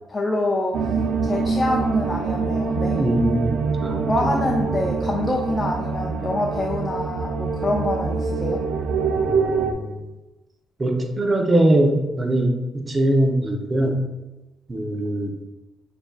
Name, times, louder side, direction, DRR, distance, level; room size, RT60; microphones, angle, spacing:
voice 1, 0.1-0.9 1.2-3.0 4.1-8.6, left 2 dB, 25° left, 0 dB, 0.5 m, -25 dB
sound 1, 0.7-9.7, right 5 dB, 75° right, 0.4 m, -25 dB
voice 2, 2.9-4.5 9.2-10.0 10.8-14.1 14.7-15.3, right 1 dB, 25° right, 2 dB, 0.8 m, -22 dB
6.6 x 2.7 x 2.4 m, 1.0 s
cardioid pair, 90°, 0 cm